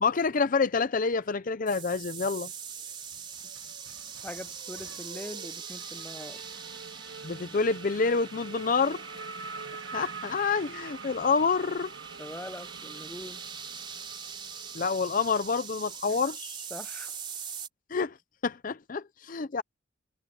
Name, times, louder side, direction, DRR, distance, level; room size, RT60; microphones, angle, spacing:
voice 1, 0.0-2.5 7.2-9.0 9.9-11.9 14.7-16.6 17.9-18.1 18.4-19.6, left 4 dB, 40° left, 0.5 m, -27 dB
Race car auto racing / Accelerating revving vroom, 1.0-2.0 2.3-16.0, right 4 dB, 80° right, 2.5 m, -46 dB
sound 1, 1.7-17.7, right 6 dB, 25° right, 3.4 m, -42 dB
voice 2, 4.2-6.4 12.2-13.4 16.1-16.2 16.7-17.1, left 1 dB, 10° left, 0.8 m, -42 dB
head